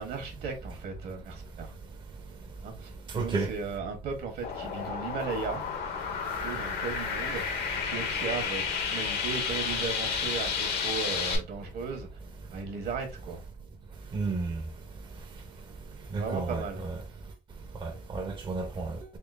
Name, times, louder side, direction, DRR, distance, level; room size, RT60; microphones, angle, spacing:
voice 1, 0.0-1.7 2.6-5.6 6.4-8.6 8.9-12.1 12.5-13.4 16.1-16.8, right 5 dB, 70° right, 1.2 m, -36 dB
voice 2, 3.1-3.5 14.1-14.6 16.1-16.6 17.8-19.0, right 3 dB, 30° right, 0.5 m, -31 dB
sound 1, 4.4-11.4, left 6 dB, 75° left, 1.0 m, -31 dB
3.6 x 3.0 x 2.4 m
cardioid pair, 110°, 17 cm